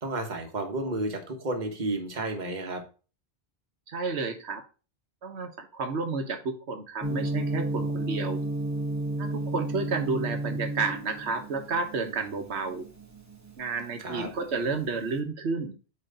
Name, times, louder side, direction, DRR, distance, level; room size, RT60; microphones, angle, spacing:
voice 1, 0.0-2.8 14.0-14.3, right 2 dB, 45° right, 4 dB, 1.3 m, -32 dB
voice 2, 3.9-4.6 5.2-8.4 9.2-12.9 13.6-15.7, right 4 dB, 75° right, 6 dB, 1.3 m, -31 dB
Gong, 7.0-15.1, right 2 dB, 15° right, 0.9 m, -33 dB
8.3 x 3.3 x 3.9 m, 0.35 s
omnidirectional pair, 1.1 m